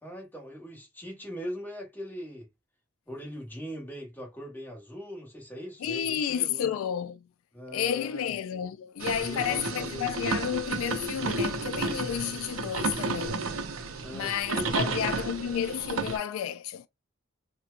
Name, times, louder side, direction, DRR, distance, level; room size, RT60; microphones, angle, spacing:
voice 1, 0.0-2.5 3.1-6.7 7.5-8.3 9.2-10.1 14.0-15.1, equal, 10° left, 1.2 m, -41 dB
voice 2, 5.8-7.3 7.7-13.6 14.1-16.9, left 9 dB, 85° left, 0.3 m, -31 dB
sound 1, 9.0-16.2, right 3 dB, 85° right, 0.6 m, -32 dB
4.3 x 2.2 x 2.4 m
head